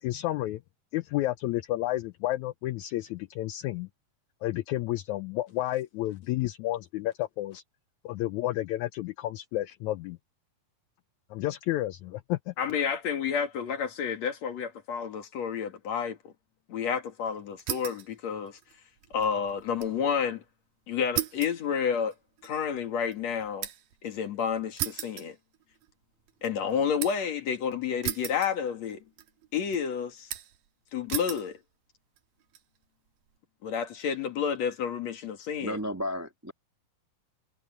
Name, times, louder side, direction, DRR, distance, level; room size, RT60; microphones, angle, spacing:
voice 1, 0.0-0.6 0.9-3.9 4.4-7.6 8.0-10.2 11.3-12.5, left 15 dB, 80° left, 1.7 m, -31 dB
voice 2, 12.6-16.3 16.7-18.6 19.1-20.4 20.9-22.1 22.4-23.7 24.0-25.4 26.4-29.0 29.5-30.3 30.9-31.6 33.6-35.8, left 7 dB, 55° left, 3.0 m, -30 dB
sound 1, 17.6-18.1 18.5-20.0 20.3-20.4 21.2-24.0 24.8-25.9 26.3-27.3 28.0-28.9 29.2-29.8 30.3-30.7 31.1-31.5 32.2-32.6, right 12 dB, 85° right, 3.1 m, -36 dB
voice 3, 35.6-36.5, equal, 10° right, 0.7 m, -33 dB
omnidirectional pair, 3.9 m